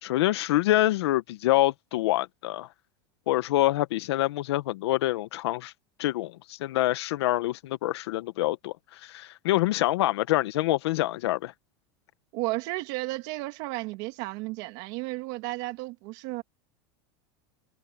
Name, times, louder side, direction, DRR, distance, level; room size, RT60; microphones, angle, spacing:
voice 1, 0.0-2.7 3.3-5.7 6.0-11.5, left 16 dB, 85° left, 0.9 m, -26 dB
voice 2, 12.3-16.4, right 21 dB, 55° right, 2.1 m, -33 dB
supercardioid pair, 155°, 13 cm